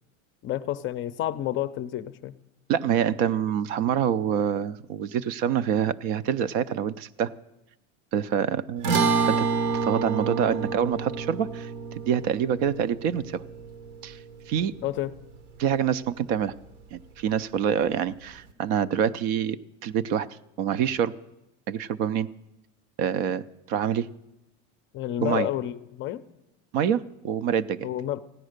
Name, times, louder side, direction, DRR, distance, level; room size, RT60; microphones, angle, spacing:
voice 1, 0.4-2.3 14.8-15.1 24.9-26.2 27.8-28.2, left 12 dB, 35° left, 12 dB, 0.5 m, -29 dB
voice 2, 2.7-7.3 8.1-9.5 9.8-11.7 12.1-13.4 14.0-14.2 14.5-14.7 15.6-16.5 16.9-20.3 20.6-21.1 21.7-22.3 23.0-24.1 25.2-25.5 26.7-27.9, right 8 dB, 60° right, 15 dB, 0.6 m, -26 dB
sound 1, 8.8-15.4, right 5 dB, 80° right, 1.5 m, -28 dB
15.5 x 9.9 x 6.5 m, 0.92 s
supercardioid pair, 135°, 36 cm